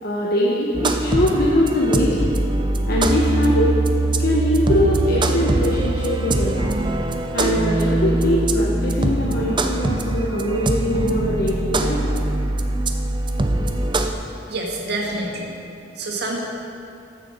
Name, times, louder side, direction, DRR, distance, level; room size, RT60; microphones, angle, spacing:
voice 1, 0.0-2.4 2.9-3.8 4.2-6.7 7.3-12.0, left 1 dB, 55° left, -4 dB, 1.0 m, -22 dB
sound 1, 0.7-14.1, right 2 dB, 25° right, 0.5 m, -22 dB
voice 2, 14.5-15.5 16.0-16.4, right 2 dB, 60° right, -1 dB, 1.7 m, -27 dB
14.0 x 6.7 x 4.8 m, 2.6 s
head